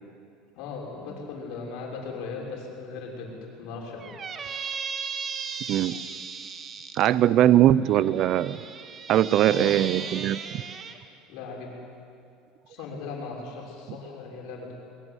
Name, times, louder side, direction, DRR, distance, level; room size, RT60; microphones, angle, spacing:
voice 1, 0.5-3.3 3.6-4.0 9.5-9.8 11.3-11.7 12.7-14.7, left 4 dB, 65° left, -1 dB, 6.2 m, -37 dB
Squeak, 4.0-7.1 7.9-11.0, right 5 dB, 35° right, 1.9 m, -36 dB
voice 2, 7.0-8.6 9.1-10.4, right 12 dB, 55° right, 18 dB, 0.7 m, -20 dB
23.0 x 21.5 x 8.2 m, 2.4 s
supercardioid pair, 105°, 0 cm